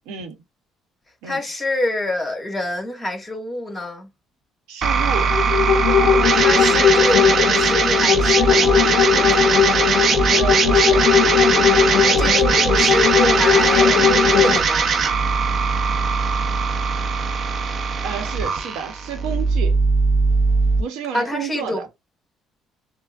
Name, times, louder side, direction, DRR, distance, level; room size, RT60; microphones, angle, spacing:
voice 1, 0.1-0.4 1.2-1.4 4.7-5.4 10.3-11.1 18.0-19.8 20.8-21.9, right 7 dB, 85° right, 0.9 m, -30 dB
voice 2, 1.2-4.1 6.3-8.9 12.0-14.9 21.1-21.8, left 1 dB, 15° left, 1.6 m, -26 dB
sound 1, 4.8-20.8, right 5 dB, 55° right, 0.7 m, -20 dB
sound 2, 5.1-14.6, left 8 dB, 70° left, 0.5 m, -18 dB
5.8 x 2.0 x 2.5 m
supercardioid pair, 85°, 0 cm